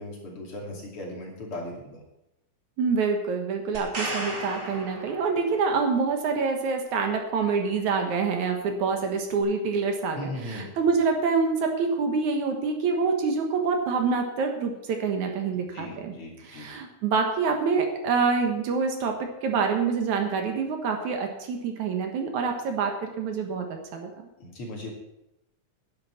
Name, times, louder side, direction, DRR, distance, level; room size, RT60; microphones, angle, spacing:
voice 1, 0.0-2.0 10.1-10.7 15.5-16.7 24.4-24.9, left 1 dB, 45° left, -1 dB, 3.3 m, -38 dB
voice 2, 2.8-16.1 16.5-23.7 23.9-24.3, right 5 dB, 70° right, 4 dB, 2.7 m, -26 dB
sound 1, 3.7-5.7 9.4-9.5, right 2 dB, 40° right, 3.3 m, -35 dB
10.5 x 10.5 x 5.9 m, 0.89 s
omnidirectional pair, 3.6 m